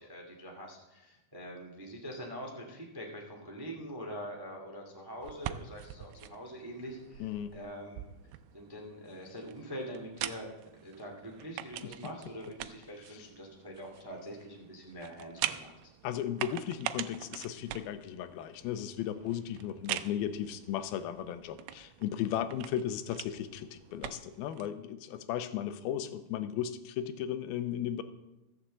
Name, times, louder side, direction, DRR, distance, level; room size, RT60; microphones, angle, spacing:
voice 1, 0.0-8.1 8.5-10.5 10.8-15.9, equal, 15° right, 1 dB, 0.7 m, -44 dB
sound 1, 5.2-24.7, right 13 dB, 85° right, 2.5 m, -44 dB
voice 2, 7.2-7.6 11.8-11.9 13.1-13.2 16.0-28.0, left 10 dB, 90° left, 11 dB, 2.5 m, -36 dB
14.5 x 6.6 x 7.6 m, 0.97 s
omnidirectional pair, 4.3 m